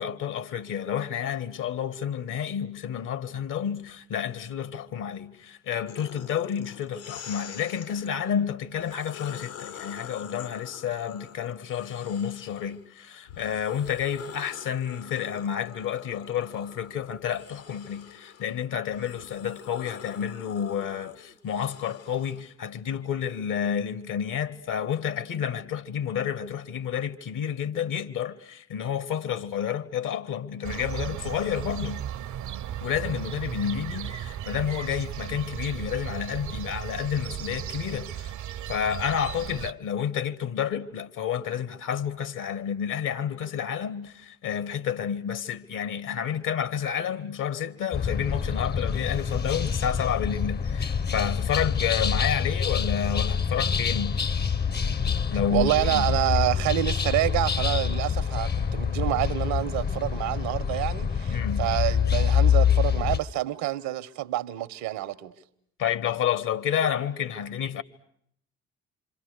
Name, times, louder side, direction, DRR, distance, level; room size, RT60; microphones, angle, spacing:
voice 1, 0.0-32.0 32.8-38.3 38.7-54.2 55.3-56.1 61.3-61.7 65.8-67.8, left 8 dB, 55° left, 1.5 m, -30 dB
sound 1, 5.9-8.1 8.7-12.8 13.3-22.4, left 8 dB, 75° left, 2.2 m, -46 dB
sound 2, 30.6-39.7, right 10 dB, 50° right, 0.9 m, -36 dB
sound 3, 47.9-63.2, left 7 dB, 25° left, 0.9 m, -26 dB
voice 2, 55.5-65.3, right 15 dB, 65° right, 1.2 m, -27 dB
27.0 x 27.0 x 6.6 m
figure-of-eight pair, 45°, 39 cm